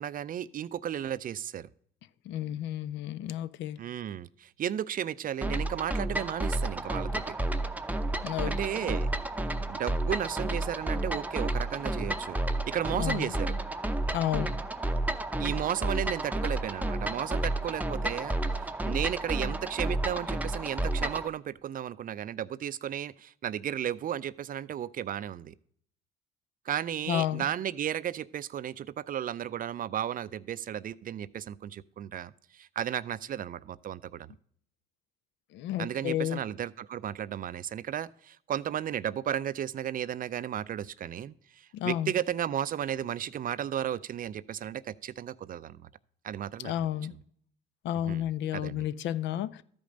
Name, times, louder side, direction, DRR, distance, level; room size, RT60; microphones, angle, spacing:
voice 1, 0.0-1.7 3.8-7.4 8.4-9.1 9.7-12.4 12.7-13.6 15.4-25.5 26.7-34.3 35.8-45.9 46.2-46.9 48.1-48.2 48.5-48.8, right 10 dB, 45° right, 0.4 m, -34 dB
voice 2, 2.3-3.8 8.2-9.0 12.9-13.3 14.1-14.5 27.1-27.4 35.5-36.4 41.7-42.1 46.6-47.2 47.8-49.6, left 12 dB, 65° left, 0.4 m, -32 dB
sound 1, 5.4-21.3, right 1 dB, 10° right, 0.7 m, -31 dB
13.0 x 5.2 x 5.0 m
supercardioid pair, 65°, 20 cm